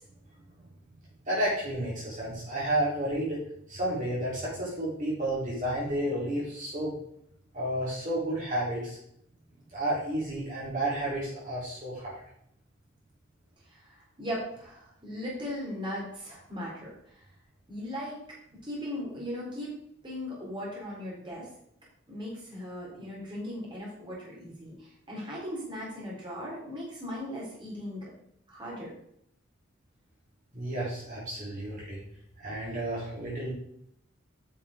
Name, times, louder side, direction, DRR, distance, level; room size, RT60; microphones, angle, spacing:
voice 1, 1.3-3.4 3.7-6.9 7.5-9.0 9.7-12.2 30.5-32.0 32.4-33.5, right 1 dB, 40° right, -7 dB, 3.6 m, -31 dB
voice 2, 13.7-17.2 17.7-18.2 18.6-19.7 20.0-21.5 22.1-28.1 28.5-28.9, equal, 25° right, -5 dB, 3.9 m, -38 dB
9.2 x 6.1 x 5.0 m, 0.72 s
head